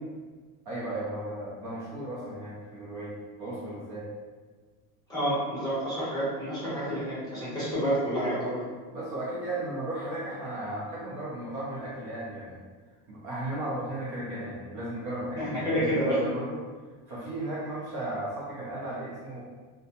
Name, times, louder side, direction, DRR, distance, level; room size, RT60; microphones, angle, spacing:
voice 1, 0.7-4.1 8.9-12.6 13.1-16.6 17.1-19.4, right 1 dB, 40° right, -7 dB, 0.6 m, -35 dB
voice 2, 5.1-8.6 15.4-16.2, equal, 10° left, -11 dB, 0.8 m, -29 dB
2.7 x 2.2 x 2.5 m, 1.4 s
supercardioid pair, 150°, 48 cm